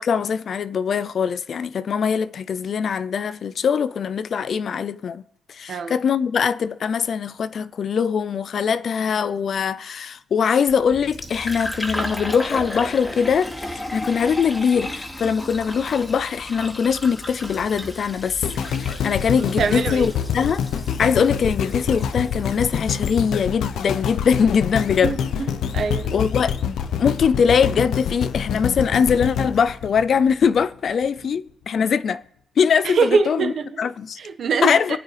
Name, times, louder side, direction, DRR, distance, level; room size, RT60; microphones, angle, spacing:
voice 1, 0.0-5.2 5.5-20.6 21.0-25.2 26.1-26.5 27.0-32.2 32.6-33.5 33.8-34.2 34.6-35.0, left 6 dB, 55° left, 0.5 m, -22 dB
Fill (with liquid), 10.7-23.1, left 1 dB, 15° left, 2.1 m, -34 dB
sound 1, 18.4-30.6 31.2-31.3, left 8 dB, 75° left, 0.9 m, -26 dB
voice 2, 19.4-20.1 25.0-26.1 32.8-33.7 34.2-34.8, right 5 dB, 60° right, 1.4 m, -23 dB
27.0 x 9.1 x 3.4 m
cardioid pair, 90°, 0 cm